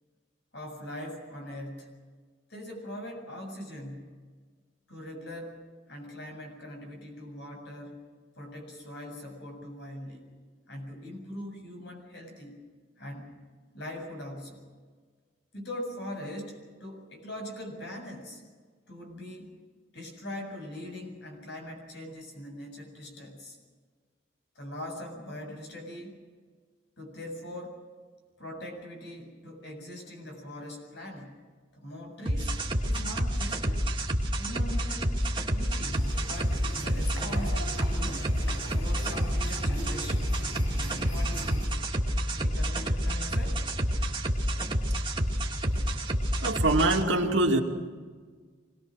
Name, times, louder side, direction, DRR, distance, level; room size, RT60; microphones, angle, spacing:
voice 1, 0.5-2.0 2.5-4.2 4.9-5.6 5.9-8.0 8.3-10.3 10.7-12.6 13.0-13.3 13.7-14.7 15.5-18.4 18.9-19.5 19.9-23.6 24.5-26.2 27.0-27.8 28.4-31.3 31.7-32.5 32.8-33.9 34.4-35.2 35.5-38.2 38.7-40.3 41.1-41.7 42.3-43.6, left 1 dB, 60° left, 3 dB, 7.4 m, -41 dB
sound 1, 32.3-47.0, equal, 25° right, 2.4 m, -29 dB
sound 2, 35.9-41.7, equal, 80° left, 7.8 m, -39 dB
voice 2, 46.4-47.6, right 2 dB, 70° right, 2 dB, 2.5 m, -24 dB
25.0 x 20.5 x 6.5 m, 1.5 s
head